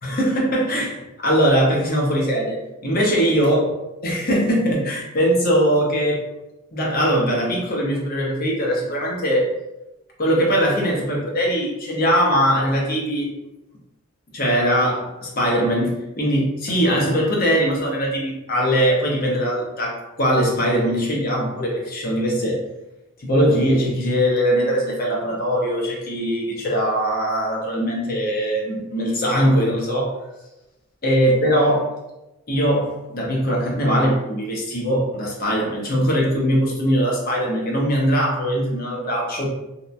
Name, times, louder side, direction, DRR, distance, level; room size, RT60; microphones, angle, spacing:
voice 1, 0.0-3.6 4.0-6.2 6.7-9.5 10.2-13.3 14.3-22.6 23.2-30.1 31.0-31.9 32.5-39.5, equal, 45° left, -2 dB, 0.6 m, -21 dB
2.9 x 2.1 x 2.4 m, 0.98 s
head